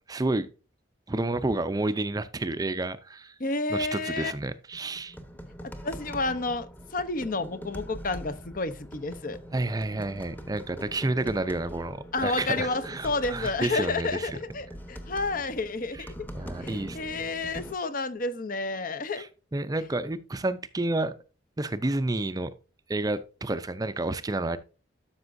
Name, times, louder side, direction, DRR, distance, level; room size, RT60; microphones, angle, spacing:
voice 1, 0.1-0.5 1.1-3.3 3.7-5.2 9.5-14.3 15.9-16.1 16.3-17.0 19.1-19.3 19.5-21.1 21.6-22.5 22.9-24.6, right 2 dB, 20° right, 0.5 m, -30 dB
voice 2, 3.4-4.3 5.8-9.4 12.1-16.1 16.6-19.3, left 3 dB, 45° left, 0.7 m, -30 dB
sound 1, 4.7-17.8, equal, 10° left, 0.9 m, -43 dB
12.5 x 6.1 x 2.6 m
head